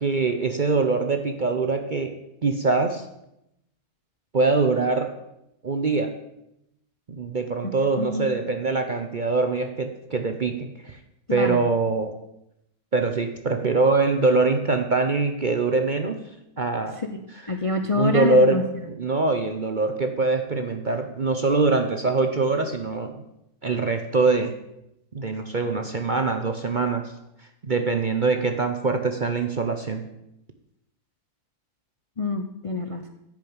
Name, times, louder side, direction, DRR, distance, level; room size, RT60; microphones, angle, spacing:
voice 1, 0.0-2.1 2.4-3.0 4.3-5.1 5.6-6.1 7.2-11.0 11.3-12.1 12.9-16.2 16.6-17.0 17.3-17.5 17.9-23.2 23.6-24.5 25.1-27.1 27.6-30.0, right 3 dB, 40° right, 6 dB, 0.7 m, -23 dB
voice 2, 7.6-8.3 11.3-11.6 17.1-17.2 17.5-18.6 32.2-33.1, left 2 dB, 35° left, 6 dB, 0.5 m, -26 dB
10.0 x 6.8 x 8.7 m, 0.84 s
omnidirectional pair, 1.7 m